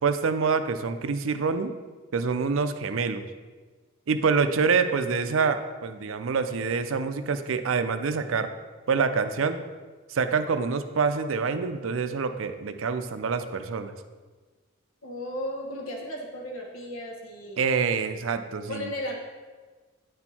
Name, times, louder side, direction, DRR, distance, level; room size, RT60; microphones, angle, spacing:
voice 1, 0.0-1.7 2.1-3.2 4.1-8.5 8.9-9.6 10.1-13.9 17.6-18.9, right 5 dB, 75° right, 9 dB, 0.5 m, -26 dB
voice 2, 15.0-17.6 18.7-19.1, left 1 dB, 80° left, 0 dB, 1.3 m, -35 dB
9.5 x 4.4 x 4.2 m, 1.4 s
head